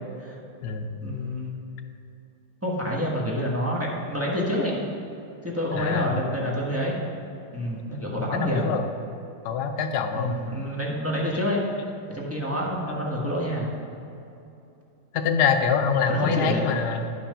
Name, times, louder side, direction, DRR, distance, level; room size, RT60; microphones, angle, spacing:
voice 1, 1.0-1.5 2.6-4.9 5.4-7.0 7.5-8.7 10.1-11.6 12.1-13.7 16.1-16.7, equal, 10° right, -5 dB, 1.1 m, -27 dB
voice 2, 5.7-6.1 8.2-8.8 9.4-10.3 15.1-17.1, left 6 dB, 65° left, 5 dB, 1.1 m, -25 dB
10.5 x 5.7 x 5.5 m, 2.8 s
omnidirectional pair, 2.2 m